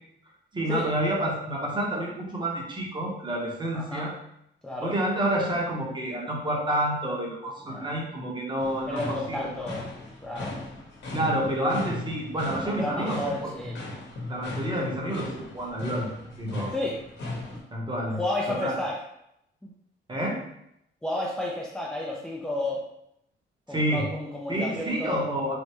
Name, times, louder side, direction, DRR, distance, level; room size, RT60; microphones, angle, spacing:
voice 1, 0.5-4.1 4.8-9.5 11.1-13.5 14.3-16.1 16.4-16.7 17.7-18.2 18.5-18.7 20.1-20.4 23.7-24.1 24.5-25.5, right 1 dB, 25° right, -2 dB, 0.9 m, -29 dB
voice 2, 3.7-4.1 4.6-4.9 7.6-8.0 8.9-9.8 10.2-10.6 12.6-13.8 16.7-17.0 18.1-19.0 19.6-19.7 21.0-22.8 23.7-25.3, left 1 dB, 5° left, -3 dB, 0.4 m, -31 dB
sound 1, 8.6-17.6, left 2 dB, 65° left, 0.9 m, -37 dB
3.3 x 2.0 x 2.9 m, 0.77 s
cardioid pair, 90°, 20 cm